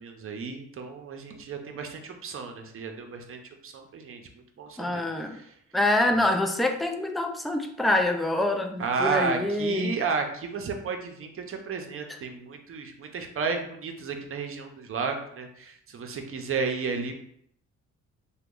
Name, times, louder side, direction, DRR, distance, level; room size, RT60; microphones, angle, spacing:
voice 1, 0.0-4.2 4.6-5.0 5.3-5.5 8.8-17.1, right 5 dB, 45° right, 4 dB, 0.6 m, -32 dB
voice 2, 4.8-5.4 5.7-10.0 12.1-12.2, left 1 dB, ahead, 4 dB, 0.3 m, -26 dB
2.9 x 2.3 x 3.6 m, 0.69 s
cardioid pair, 90°, 30 cm